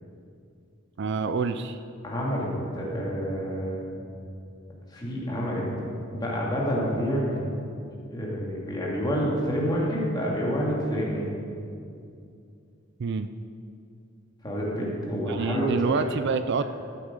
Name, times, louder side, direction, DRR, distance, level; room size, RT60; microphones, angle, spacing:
voice 1, 1.0-1.8 13.0-13.3 15.3-16.6, right 5 dB, 55° right, 11 dB, 0.4 m, -27 dB
voice 2, 2.0-3.9 4.9-7.6 8.1-11.3 14.4-16.0, equal, 20° left, -4 dB, 2.4 m, -28 dB
13.0 x 8.5 x 5.3 m, 2.5 s
head